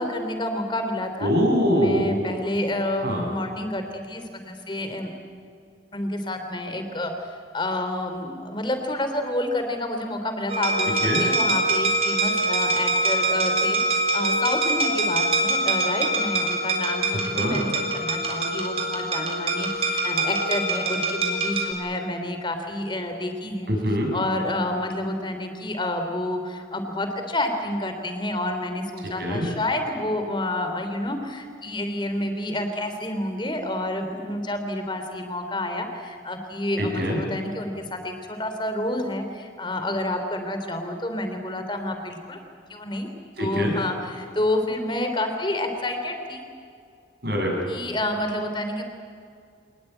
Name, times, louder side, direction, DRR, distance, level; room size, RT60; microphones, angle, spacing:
voice 1, 0.0-1.3 1.7-5.1 5.9-7.3 7.5-23.7 24.1-42.4 42.7-43.1 43.4-46.4 47.7-48.8, left 1 dB, 25° left, 6 dB, 3.2 m, -29 dB
voice 2, 1.2-2.1 3.0-3.3 11.0-11.2 17.3-17.6 23.7-24.1 29.2-29.5 36.8-37.2 43.4-43.7 47.2-47.7, equal, 55° right, 0 dB, 6.9 m, -23 dB
sound 1, 10.5-21.7, right 2 dB, 30° right, 4.0 m, -24 dB
26.5 x 20.0 x 9.1 m, 2.3 s
head